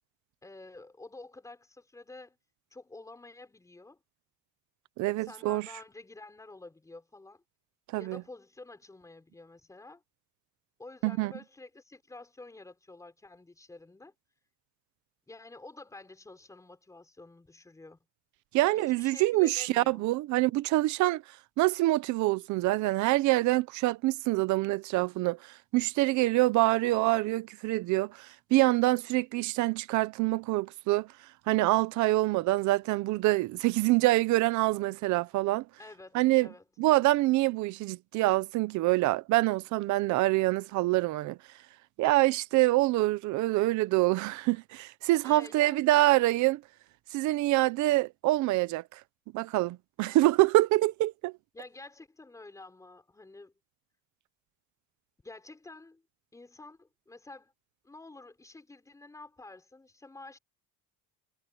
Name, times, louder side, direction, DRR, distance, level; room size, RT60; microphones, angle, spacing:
voice 1, 0.4-2.4 2.7-4.0 5.2-7.4 8.0-10.0 10.8-14.1 15.3-18.0 18.6-20.1 35.8-36.6 45.2-46.1 51.5-53.5 55.2-56.0 56.3-57.5 57.8-60.4, left 2 dB, 10° left, 5.2 m, -49 dB
voice 2, 5.0-5.7 7.9-8.2 11.0-11.3 18.5-21.2 21.6-31.1 31.5-35.7 36.1-36.5 36.8-41.4 42.0-46.6 47.1-49.0 49.3-51.3, right 18 dB, 55° right, 0.8 m, -26 dB
cardioid pair, 180°, 36 cm